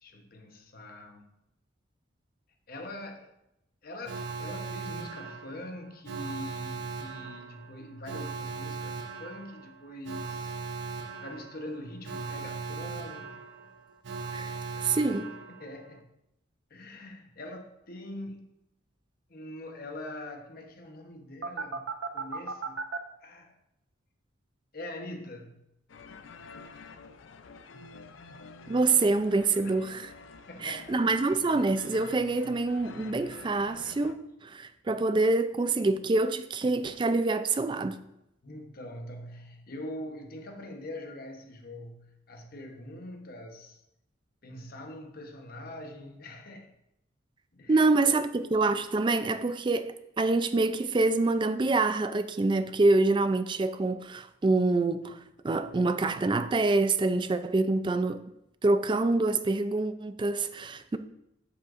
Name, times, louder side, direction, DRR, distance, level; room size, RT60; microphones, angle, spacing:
voice 1, 0.0-1.3 2.7-3.3 3.8-10.6 11.2-13.3 15.5-16.0 16.7-18.5 19.3-21.9 22.1-22.8 23.2-23.5 24.7-25.6 29.6-29.8 30.5-31.0 38.4-43.8 44.4-46.7 47.5-48.2, left 1 dB, 50° left, 0.9 m, -43 dB
Alarm, 4.0-16.0 21.4-23.0, right 4 dB, 65° right, 0.6 m, -38 dB
voice 2, 14.3-15.3 28.7-30.1 30.6-38.0 47.7-55.2 55.4-58.2 58.6-61.0, right 3 dB, 25° right, 0.3 m, -26 dB
sound 1, 25.9-34.1, left 4 dB, 70° left, 0.5 m, -48 dB
8.3 x 7.6 x 2.5 m
head